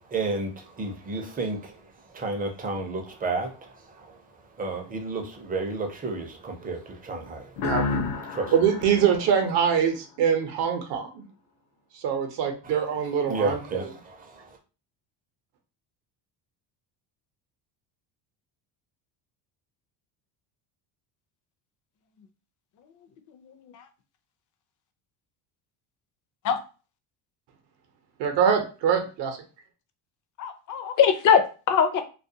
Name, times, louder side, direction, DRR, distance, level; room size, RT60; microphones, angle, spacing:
voice 1, 0.0-7.8 8.1-8.5 12.6-14.6, right 3 dB, 20° right, 3 dB, 0.5 m, -32 dB
sound 1, 7.6-10.2, left 4 dB, 80° left, 0.7 m, -31 dB
voice 2, 8.5-11.2 11.9-13.8 28.2-29.4, right 7 dB, 60° right, 5 dB, 0.7 m, -24 dB
voice 3, 23.4-23.9 26.4-26.6 30.4-32.0, left 7 dB, 40° left, 8 dB, 0.4 m, -22 dB
2.4 x 2.2 x 2.7 m, 0.34 s
cardioid pair, 115°, 48 cm